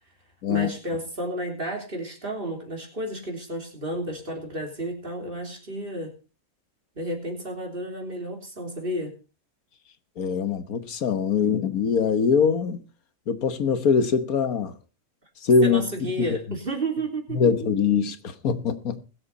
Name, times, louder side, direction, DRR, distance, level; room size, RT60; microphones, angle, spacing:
voice 1, 0.5-6.1 6.9-9.1 15.6-17.5, right 1 dB, 40° right, 3.5 m, -32 dB
voice 2, 10.2-12.8 13.3-14.7 15.4-16.3 17.3-19.0, left 6 dB, 85° left, 1.6 m, -23 dB
21.0 x 7.8 x 4.1 m
omnidirectional pair, 1.5 m